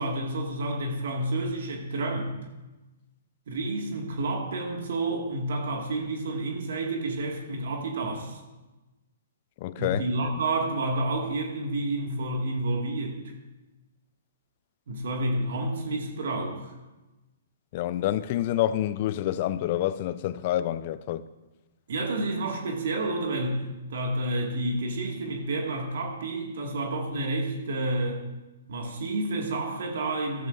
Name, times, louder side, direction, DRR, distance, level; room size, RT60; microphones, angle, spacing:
voice 1, 0.0-2.3 3.5-8.4 9.7-13.2 14.9-16.7 21.9-23.7 23.9-28.2 28.7-30.5, right 2 dB, 60° right, 2.0 m, -29 dB
voice 2, 9.6-10.3 17.7-21.2, left 13 dB, 40° left, 0.5 m, -28 dB
14.0 x 13.5 x 2.6 m
figure-of-eight pair, 120°, 0 cm